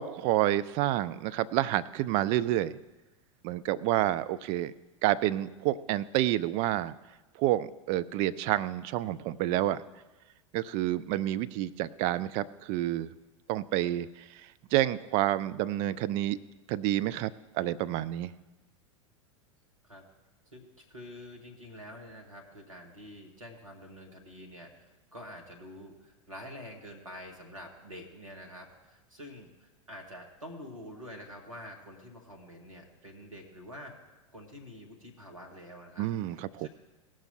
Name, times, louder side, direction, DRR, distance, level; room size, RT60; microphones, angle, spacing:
voice 1, 0.0-2.7 3.4-4.7 5.0-6.9 7.4-9.8 10.5-13.1 13.5-14.1 14.7-16.4 16.7-18.3 36.0-36.7, right 14 dB, 40° right, 13 dB, 0.4 m, -29 dB
voice 2, 20.5-36.7, equal, 85° right, 0 dB, 1.9 m, -47 dB
18.0 x 6.0 x 4.4 m, 1.1 s
figure-of-eight pair, 85°, 17 cm